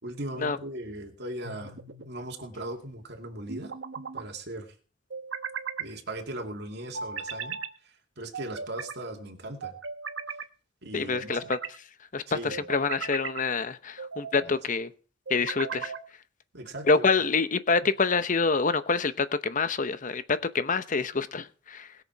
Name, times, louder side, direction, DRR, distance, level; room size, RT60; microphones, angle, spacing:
voice 1, 0.0-1.8 2.1-3.7 4.1-4.7 5.8-7.6 7.8-9.8 10.8-11.5 12.3-12.7 14.4-14.5 16.5-17.0, right 1 dB, 60° right, 2.5 m, -39 dB
sound 1, 1.4-2.1 3.5-4.2 5.1-5.9 6.9-7.7 8.3-9.0 9.6-10.5 11.1-11.8 12.5-13.4 14.0-14.5 15.3-16.1, right 6 dB, 80° right, 1.1 m, -37 dB
voice 2, 10.9-11.6 12.1-14.9 15.3-15.9 16.9-21.9, left 4 dB, 40° left, 0.9 m, -26 dB
20.5 x 7.0 x 4.7 m
head